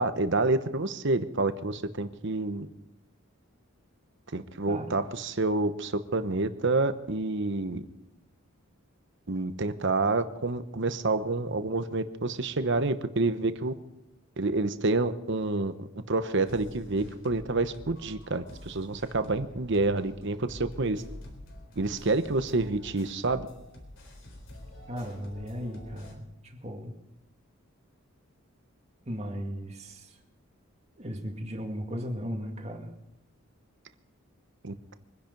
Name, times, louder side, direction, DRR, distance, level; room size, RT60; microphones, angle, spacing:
voice 1, 0.0-2.7 4.3-7.8 9.3-13.7 14.4-21.0 21.8-23.5 34.6-34.9, right 3 dB, 55° right, 11 dB, 1.0 m, -28 dB
voice 2, 4.7-5.0 24.9-26.9 29.1-30.2 31.0-32.9, equal, 30° right, 1 dB, 2.1 m, -36 dB
sound 1, 16.4-26.1, left 1 dB, 60° left, 3.8 m, -47 dB
23.5 x 10.5 x 5.3 m, 0.89 s
head